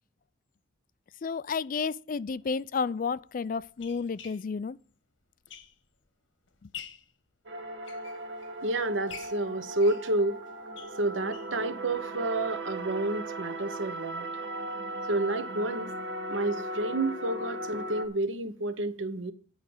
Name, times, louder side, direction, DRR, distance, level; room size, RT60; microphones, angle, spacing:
voice 1, 1.2-4.8, left 5 dB, 45° left, 0.4 m, -31 dB
sneaker squeak rubber, 2.2-2.3 3.1-6.1 6.5-7.1 7.7-8.6 9.1-11.6 12.0-12.1 12.4-12.5 12.8-12.9, left 7 dB, 85° left, 1.5 m, -48 dB
sound 1, 7.5-18.1, right 1 dB, 65° right, 1.4 m, -37 dB
voice 2, 8.6-10.4 11.0-14.3 15.1-15.9 16.3-19.3, right 2 dB, 85° right, 1.0 m, -30 dB
9.6 x 5.0 x 7.7 m
head